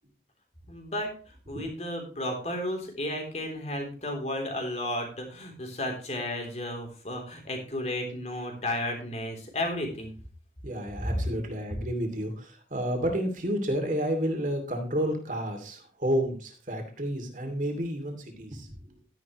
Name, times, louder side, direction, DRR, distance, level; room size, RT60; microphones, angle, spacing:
voice 1, 0.7-1.1 1.5-10.1, left 1 dB, 35° left, 2 dB, 3.4 m, -33 dB
voice 2, 10.6-18.9, equal, 45° right, 4 dB, 2.7 m, -30 dB
12.0 x 10.5 x 3.1 m, 0.38 s
head